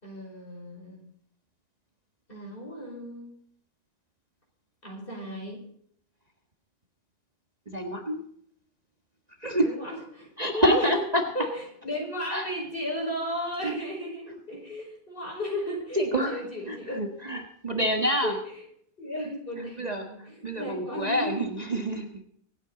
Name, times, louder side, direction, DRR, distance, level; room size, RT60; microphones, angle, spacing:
voice 1, 0.0-1.0 2.3-3.3 4.8-5.6 9.6-11.0 11.3-17.0 18.2-18.6 19.0-21.3, left 1 dB, 40° left, -1 dB, 5.5 m, -35 dB
voice 2, 7.7-8.2 9.4-9.7 10.4-11.2 12.3-12.5 13.6-13.7 15.9-16.4 16.7-18.4 19.8-22.2, equal, 30° right, 3 dB, 1.6 m, -27 dB
25.0 x 9.1 x 4.0 m, 0.64 s
omnidirectional pair, 1.5 m